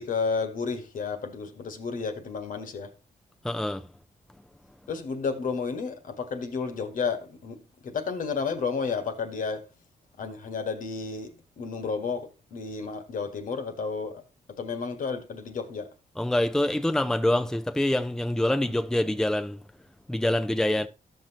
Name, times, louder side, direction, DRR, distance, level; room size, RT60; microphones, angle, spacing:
voice 1, 0.0-2.9 4.9-9.7 10.2-14.2 14.5-15.9, left 5 dB, 70° left, 1.5 m, -32 dB
voice 2, 3.4-3.9 16.2-19.6 20.1-20.9, left 1 dB, 5° left, 0.6 m, -25 dB
13.5 x 6.0 x 2.9 m
cardioid pair, 80°, 14 cm